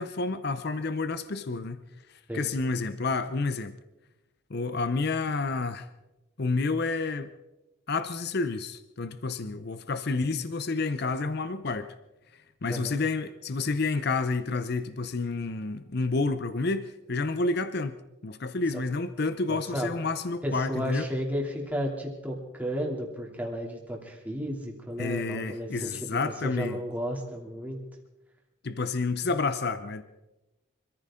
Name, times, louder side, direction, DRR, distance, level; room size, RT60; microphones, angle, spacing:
voice 1, 0.0-1.8 2.1-3.8 4.5-5.9 6.4-7.3 7.9-11.9 12.3-18.0 18.2-21.1 25.0-26.8 28.6-30.0, left 3 dB, 50° left, 0.7 m, -30 dB
voice 2, 12.7-13.0 19.5-20.0 20.4-27.8, equal, 5° right, 2.8 m, -33 dB
25.5 x 14.5 x 3.8 m
head